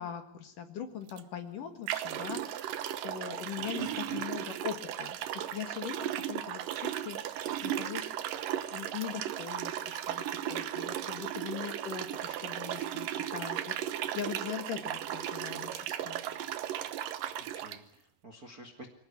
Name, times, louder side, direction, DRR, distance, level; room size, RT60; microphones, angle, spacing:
voice 1, 0.0-8.1 8.7-10.2 10.5-16.2, left 8 dB, 60° left, 8 dB, 3.2 m, -41 dB
sound 1, 1.1-1.2 1.9-17.8, right 11 dB, 70° right, 2.5 m, -36 dB
voice 2, 3.7-4.3 17.5-18.9, right 1 dB, 30° right, 5 dB, 2.0 m, -49 dB
25.5 x 17.5 x 9.7 m, 0.66 s
omnidirectional pair, 4.7 m